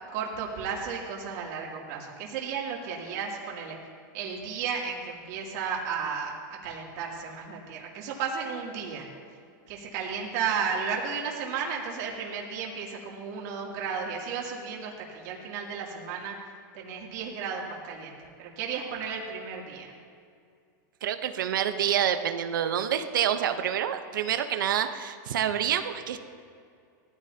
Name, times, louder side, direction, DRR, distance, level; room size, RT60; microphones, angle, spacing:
voice 1, 0.1-3.8 4.1-9.1 9.7-16.4 16.7-19.9, right 6 dB, 55° right, -2 dB, 2.9 m, -34 dB
voice 2, 21.0-26.2, right 9 dB, 90° right, 8 dB, 1.0 m, -27 dB
18.5 x 14.0 x 2.9 m, 2.3 s
supercardioid pair, 145°, 11 cm